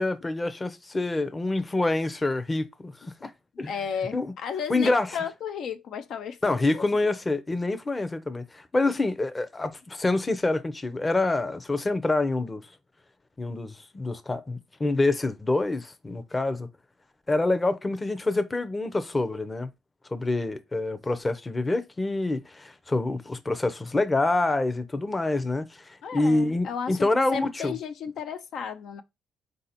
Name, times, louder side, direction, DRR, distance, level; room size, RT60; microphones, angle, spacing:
voice 1, 0.0-2.9 3.2-3.3 3.6-3.7 4.1-4.3 4.7-5.1 6.4-12.6 13.4-16.7 17.3-19.7 20.1-27.7, left 2 dB, 20° left, 0.6 m, -26 dB
voice 2, 3.7-6.9 26.0-29.0, left 7 dB, 70° left, 0.4 m, -34 dB
4.2 x 2.7 x 4.1 m
cardioid pair, 90°, 0 cm